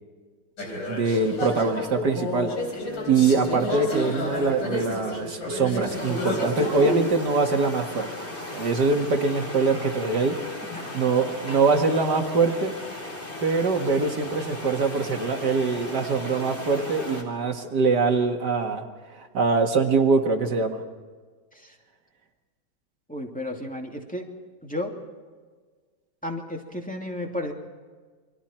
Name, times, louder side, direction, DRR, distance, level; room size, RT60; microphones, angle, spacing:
sound 1, 0.6-7.1, left 1 dB, 65° left, 4.9 m, -30 dB
voice 1, 0.9-2.5 3.1-8.1 8.5-10.4 10.9-12.7 13.4-18.9 19.1-20.8, right 4 dB, 55° right, 4 dB, 2.3 m, -23 dB
sound 2, 5.9-17.2, left 1 dB, 30° left, 3.8 m, -37 dB
voice 2, 23.1-24.2 24.6-24.9 26.2-27.5, left 1 dB, 5° left, 1 dB, 2.5 m, -33 dB
29.0 x 23.5 x 4.4 m, 1.5 s
omnidirectional pair, 2.2 m